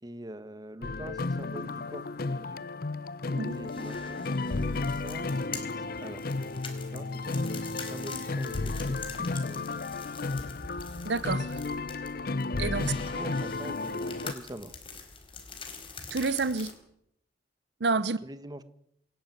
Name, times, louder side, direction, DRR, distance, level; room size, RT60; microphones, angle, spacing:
voice 1, 0.0-2.6 3.6-9.8 12.8-14.8 18.2-18.6, right 1 dB, 25° right, 1.4 m, -44 dB
sound 1, 0.8-14.3, left 3 dB, 55° left, 0.7 m, -33 dB
sound 2, 3.4-16.7, left 4 dB, 30° left, 4.2 m, -45 dB
voice 2, 11.0-11.6 12.6-12.8 16.1-16.7 17.8-18.2, right 4 dB, 75° right, 0.8 m, -28 dB
27.0 x 12.0 x 9.3 m
head